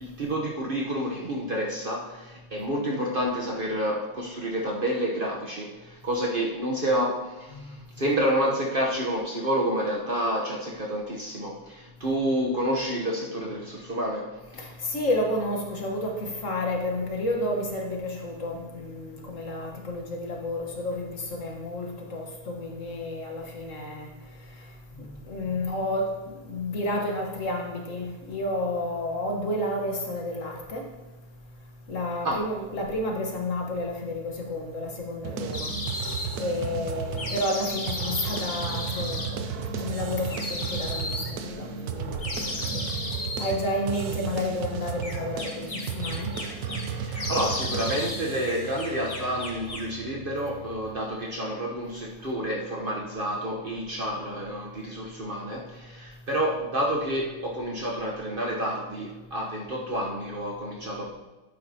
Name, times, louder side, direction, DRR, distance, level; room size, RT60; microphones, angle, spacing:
voice 1, 0.0-14.7 32.2-32.4 46.8-61.1, equal, 40° right, 1.1 m, -29 dB
voice 2, 14.6-24.1 25.0-26.1 26.4-30.8 31.9-35.7 36.4-39.4 39.8-41.2 41.4-42.2 42.5-42.8 43.4-46.3, left 1 dB, 55° left, 1.6 m, -31 dB
sound 1, 35.2-51.0, right 6 dB, 80° right, 1.2 m, -34 dB
sound 2, 35.5-36.3 37.2-39.3 40.3-41.3 42.2-43.5 45.0-46.9 47.1-48.2 48.5-49.9, left 2 dB, 25° left, 0.9 m, -34 dB
11.0 x 9.2 x 2.8 m
omnidirectional pair, 1.6 m